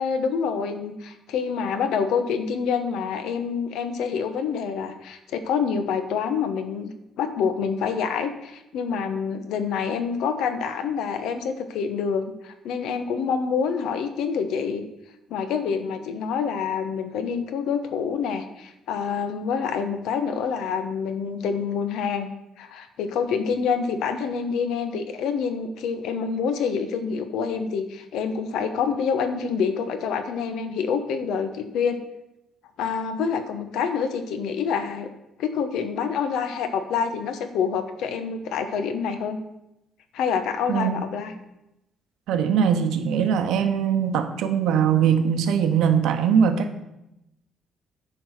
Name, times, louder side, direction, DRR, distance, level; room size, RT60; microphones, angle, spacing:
voice 1, 0.0-6.9 7.2-14.8 15.3-22.3 22.6-32.0 32.8-35.1 35.4-39.4 40.1-41.3, left 6 dB, 75° left, 9 dB, 1.0 m, -27 dB
voice 2, 40.7-41.0 42.3-46.8, right 7 dB, 80° right, 7 dB, 1.0 m, -21 dB
9.7 x 4.7 x 6.5 m, 0.88 s
cardioid pair, 175°, 0 cm